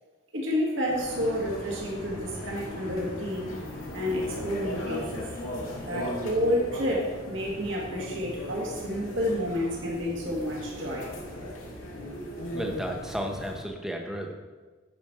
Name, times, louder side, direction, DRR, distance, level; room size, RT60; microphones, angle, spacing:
voice 1, 0.3-3.5 3.9-5.3 5.8-11.1, equal, 60° right, -3 dB, 2.0 m, -30 dB
sound 1, 0.9-13.6, left 1 dB, 75° left, 2.2 m, -38 dB
voice 2, 12.5-14.3, equal, ahead, 2 dB, 0.9 m, -33 dB
10.5 x 5.1 x 6.0 m, 1.3 s
head